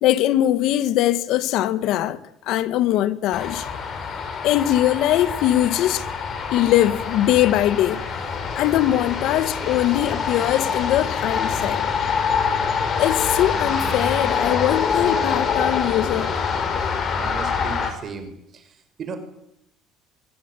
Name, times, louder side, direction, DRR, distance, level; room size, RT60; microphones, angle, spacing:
voice 1, 0.0-3.7 4.4-6.1 6.5-8.0 8.6-11.8 13.0-16.3, left 13 dB, 70° left, 1.9 m, -21 dB
sound 1, 3.3-17.9, left 6 dB, 40° left, 6.4 m, -25 dB
voice 2, 17.2-18.7 19.0-19.2, right 5 dB, 45° right, 5.6 m, -35 dB
24.5 x 22.0 x 10.0 m
cardioid pair, 125°, 0 cm